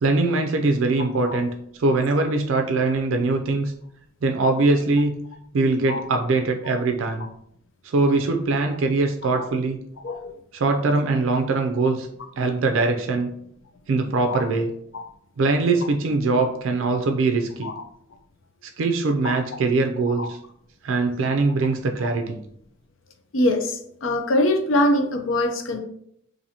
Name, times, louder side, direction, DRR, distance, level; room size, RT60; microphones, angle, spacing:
voice 1, 0.0-1.5 1.8-3.7 4.2-5.2 5.5-7.3 7.8-9.8 10.5-12.1 12.4-13.3 13.9-14.7 15.4-17.7 18.8-20.4 20.8-22.4, right 3 dB, 70° right, 4 dB, 0.4 m, -22 dB
voice 2, 23.3-25.8, left 1 dB, 70° left, 5 dB, 0.5 m, -23 dB
2.7 x 2.6 x 4.1 m, 0.70 s
head